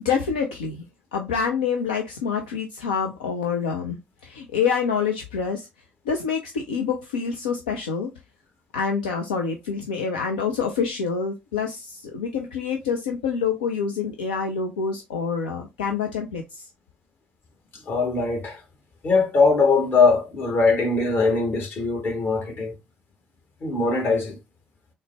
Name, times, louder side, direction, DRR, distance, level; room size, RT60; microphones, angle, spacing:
voice 1, 0.0-0.8 1.1-5.7 6.1-8.1 8.7-16.6, left 6 dB, 75° left, 0.4 m, -27 dB
voice 2, 17.9-18.6 19.0-22.7 23.6-24.4, left 4 dB, 45° left, 1.2 m, -21 dB
3.8 x 2.1 x 3.2 m
figure-of-eight pair, 50°, 5 cm